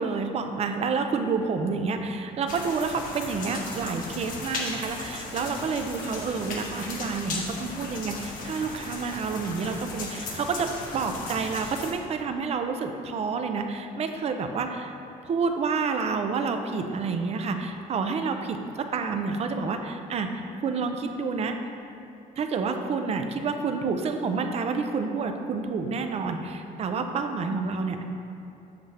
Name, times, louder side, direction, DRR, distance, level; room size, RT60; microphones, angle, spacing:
voice 1, 0.0-14.9 15.2-21.6 22.4-28.0, right 4 dB, 40° right, 6 dB, 0.6 m, -29 dB
sound 1, 2.5-11.9, left 3 dB, 60° left, 1.3 m, -36 dB
7.9 x 6.9 x 3.4 m, 2.9 s
cardioid pair, 130°, 16 cm